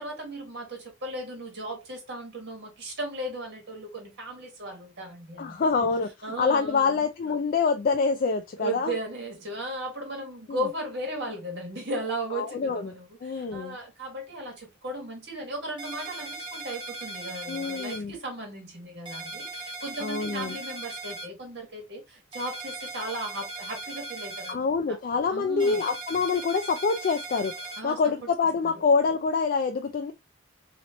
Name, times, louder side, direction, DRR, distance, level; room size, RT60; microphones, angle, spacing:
voice 1, 0.0-5.8 6.2-7.0 8.6-25.0 25.3-25.8 27.8-28.3 28.6-28.7, right 1 dB, 60° right, 1.5 m, -36 dB
voice 2, 5.4-8.9 10.5-10.6 12.3-12.9 13.2-13.8 17.5-18.2 20.0-20.6 24.5-30.1, left 5 dB, 45° left, 0.3 m, -26 dB
sound 1, 15.8-18.0 19.1-21.3 22.3-24.5 25.6-27.8, right 3 dB, 25° right, 1.1 m, -38 dB
3.0 x 2.9 x 2.7 m
head